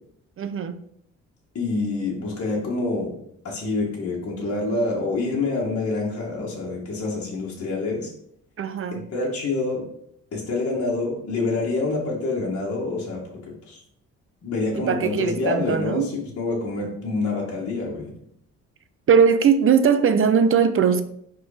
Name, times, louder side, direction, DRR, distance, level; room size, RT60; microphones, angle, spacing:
voice 1, 0.4-0.8 8.6-9.0 14.8-16.1 19.1-21.0, right 6 dB, 45° right, 10 dB, 0.7 m, -19 dB
voice 2, 1.5-3.1 3.4-8.1 8.9-9.9 10.3-13.4 13.7-13.8 14.4-18.1, left 3 dB, 50° left, -4 dB, 1.7 m, -27 dB
5.0 x 3.9 x 4.9 m, 0.71 s
cardioid pair, 90°, 30 cm